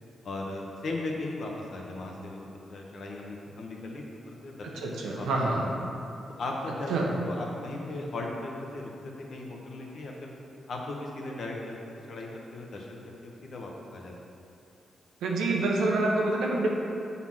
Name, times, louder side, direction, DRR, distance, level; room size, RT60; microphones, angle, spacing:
voice 1, 0.2-5.3 5.5-5.8 6.4-6.9 7.2-10.3 10.7-11.7 12.1-14.1, left 2 dB, 65° left, -1 dB, 1.2 m, -37 dB
voice 2, 4.8-5.6 6.9-7.1 15.2-16.7, right 2 dB, 90° right, -2 dB, 1.1 m, -26 dB
6.9 x 4.3 x 5.8 m, 2.8 s
cardioid pair, 60°, 0 cm